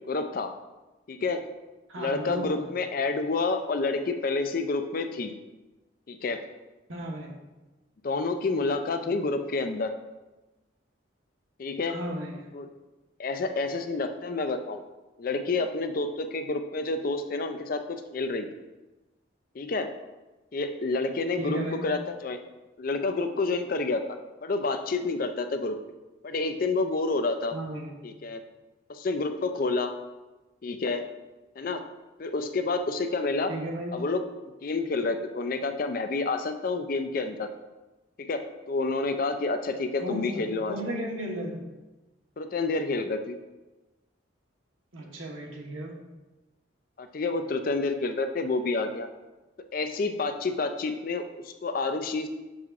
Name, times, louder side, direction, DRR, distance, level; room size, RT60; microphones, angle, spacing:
voice 1, 0.1-0.5 1.1-1.5 1.9-5.3 6.1-6.4 8.0-9.9 11.6-12.0 12.5-12.7 13.2-14.8 15.2-18.5 19.5-19.9 20.5-22.4 22.8-24.0 24.4-25.8 26.2-27.5 28.0-28.4 28.9-29.9 30.6-31.1 31.6-31.8 32.2-33.5 33.9-34.2 34.6-37.5 38.2-40.8 42.4-43.4 47.0-49.1 49.7-52.3, left 3 dB, 45° left, 7 dB, 0.4 m, -29 dB
voice 2, 1.9-2.7 6.9-7.3 11.9-12.5 21.4-21.9 27.5-27.9 33.5-34.0 40.0-41.8 44.9-46.0, right 1 dB, 90° right, -1 dB, 1.2 m, -35 dB
6.8 x 6.3 x 2.4 m, 1.1 s
head